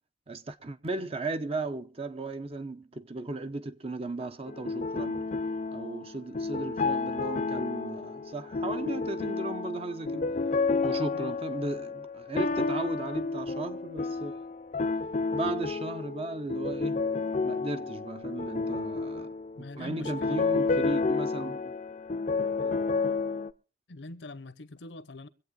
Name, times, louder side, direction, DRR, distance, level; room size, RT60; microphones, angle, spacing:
voice 1, 0.3-5.3 5.7-10.3 10.8-14.4 15.3-17.1 17.4-21.8 22.6-22.8, right 2 dB, 35° right, 0.8 m, -36 dB
sound 1, 4.5-23.5, left 4 dB, 45° left, 0.6 m, -31 dB
voice 2, 11.1-11.5 19.6-20.5 23.9-25.3, left 2 dB, 80° left, 0.9 m, -43 dB
24.5 x 8.3 x 3.8 m
head